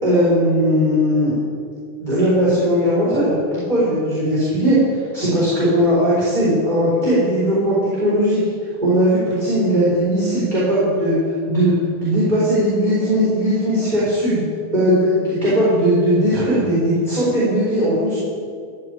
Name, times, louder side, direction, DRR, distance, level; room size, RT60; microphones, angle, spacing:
voice 1, 0.0-1.4 2.0-3.4 3.7-8.4 8.8-11.2 11.5-14.4 14.7-18.2, equal, 10° right, -10 dB, 4.1 m, -18 dB
14.5 x 7.7 x 9.5 m, 2.2 s
omnidirectional pair, 3.8 m